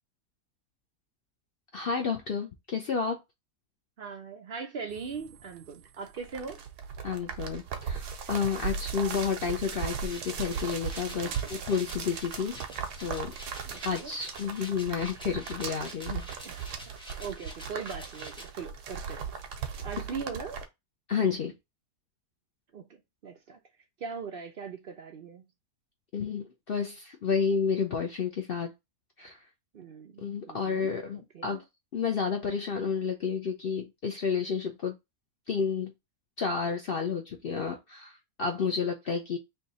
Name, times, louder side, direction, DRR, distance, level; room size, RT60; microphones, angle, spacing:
voice 1, 1.7-3.2 7.0-12.5 13.0-13.3 13.8-16.2 21.1-21.5 26.1-28.7 29.2-29.4 30.2-31.6 31.9-35.0 35.5-35.9 36.4-39.4, left 6 dB, 65° left, 0.5 m, -31 dB
voice 2, 4.0-6.6 11.1-11.6 13.7-14.1 16.4-16.6 17.2-19.3 19.8-20.6 22.7-23.6 24.0-25.4 29.7-31.6, right 5 dB, 65° right, 0.5 m, -40 dB
sound 1, 4.9-20.6, right 6 dB, 90° right, 1.3 m, -38 dB
sound 2, 10.0-18.5, equal, 5° left, 1.0 m, -48 dB
3.5 x 2.8 x 4.0 m
omnidirectional pair, 1.7 m